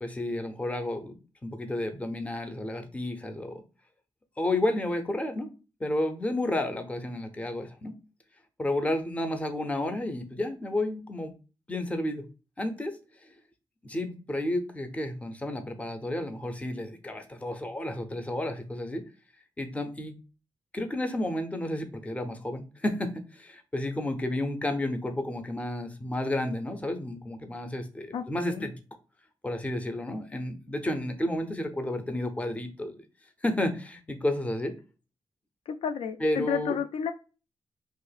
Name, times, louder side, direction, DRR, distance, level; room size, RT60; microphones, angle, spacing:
voice 1, 0.0-3.6 4.4-5.5 5.8-8.0 8.6-11.3 11.7-12.3 12.6-12.9 13.2-13.3 13.8-19.0 19.6-20.2 20.7-28.7 29.4-33.0 33.4-34.7 36.2-36.8, left 1 dB, 15° left, 7 dB, 0.5 m, -31 dB
voice 2, 28.1-28.7 35.7-37.1, left 7 dB, 80° left, 8 dB, 0.4 m, -31 dB
2.8 x 2.4 x 3.9 m, 0.33 s
wide cardioid pair, 135°, 10 cm